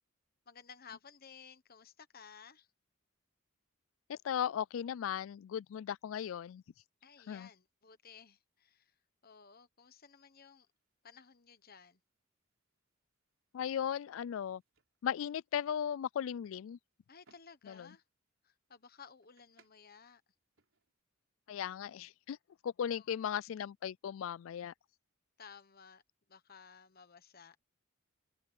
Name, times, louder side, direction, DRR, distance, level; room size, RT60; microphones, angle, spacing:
voice 1, 0.5-2.7 7.0-9.0 9.2-10.7 11.0-12.0 17.1-18.0 18.4-20.2 22.9-23.3 25.4-26.0 26.3-27.6, left 6 dB, 45° left, 1.2 m, -56 dB
voice 2, 4.1-6.6 7.3-7.5 13.5-14.6 15.0-16.8 17.7-17.9 21.5-22.4 22.6-24.7, left 9 dB, 65° left, 0.3 m, -37 dB
sound 1, 10.5-21.0, right 4 dB, 65° right, 4.5 m, -76 dB
head